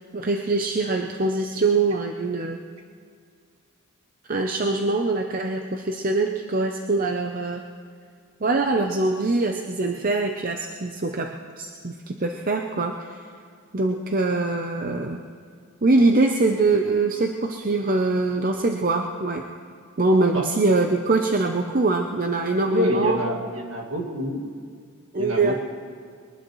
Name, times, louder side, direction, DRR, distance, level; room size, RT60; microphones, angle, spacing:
voice 1, 0.1-2.6 4.3-7.6 8.4-13.2 13.7-15.2 15.8-19.5 20.0-23.2 25.1-25.6, right 3 dB, 40° right, 4 dB, 0.6 m, -23 dB
voice 2, 22.7-24.5 25.2-25.6, left 1 dB, 60° right, 0 dB, 2.2 m, -27 dB
22.0 x 19.5 x 3.1 m, 2.2 s
head